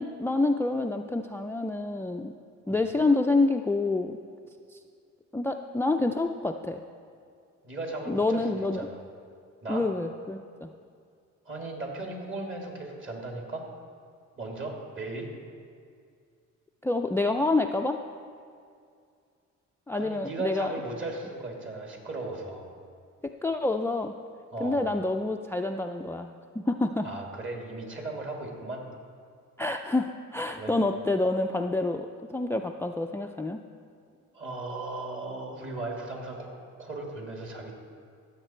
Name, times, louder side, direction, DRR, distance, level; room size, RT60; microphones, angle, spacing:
voice 1, 0.0-2.3 2.7-4.2 4.7-4.8 5.3-6.8 8.1-8.9 9.7-10.7 16.8-18.0 19.9-20.7 23.4-24.1 24.6-27.1 29.6-33.6, left 2 dB, 10° left, 6 dB, 0.3 m, -27 dB
voice 2, 7.6-9.0 9.6-9.8 11.4-13.7 14.4-15.3 20.0-22.7 24.5-24.8 27.0-28.8 30.6-30.8 34.3-37.7, right 2 dB, 40° right, 0 dB, 2.5 m, -37 dB
16.0 x 7.3 x 4.4 m, 2.3 s
cardioid pair, 90°, 30 cm